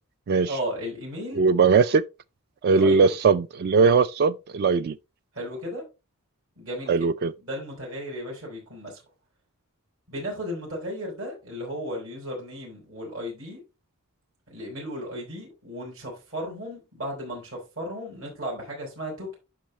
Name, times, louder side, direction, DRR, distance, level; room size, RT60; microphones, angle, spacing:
voice 1, 0.5-1.4 2.7-3.1 5.3-5.8 6.6-7.1 7.4-9.0 10.1-13.6 14.5-19.4, equal, 70° right, 4.2 m, -35 dB
voice 2, 1.4-2.0 2.6-4.9 6.9-7.3, right 5 dB, 45° right, 0.3 m, -20 dB
10.5 x 5.3 x 3.1 m
head